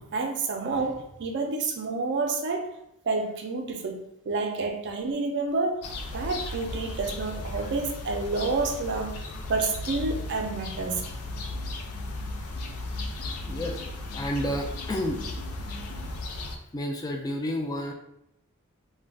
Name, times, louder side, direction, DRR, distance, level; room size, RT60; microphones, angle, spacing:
voice 1, 0.0-2.7 3.0-11.0 15.8-16.2, right 3 dB, 55° right, 3 dB, 0.4 m, -29 dB
sound 1, 5.8-16.6, left 2 dB, 90° left, 0.4 m, -36 dB
sound 2, 10.4-16.0, left 3 dB, 60° left, 0.7 m, -49 dB
voice 2, 13.1-13.8 14.1-15.2 16.7-17.9, left 1 dB, 15° left, 2 dB, 0.3 m, -31 dB
2.3 x 2.1 x 3.4 m, 0.76 s
head